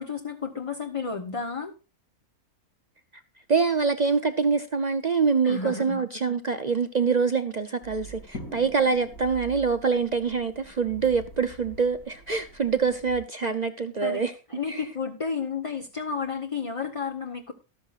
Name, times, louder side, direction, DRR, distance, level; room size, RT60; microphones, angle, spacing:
voice 1, 0.0-1.7 5.4-6.0 14.0-14.2 14.5-17.5, left 5 dB, 25° left, 0.9 m, -32 dB
voice 2, 3.5-14.3 14.7-14.8, right 5 dB, 50° right, 0.5 m, -25 dB
sound 1, 7.8-13.2, equal, 75° left, 3.3 m, -44 dB
13.5 x 12.0 x 2.5 m
omnidirectional pair, 1.6 m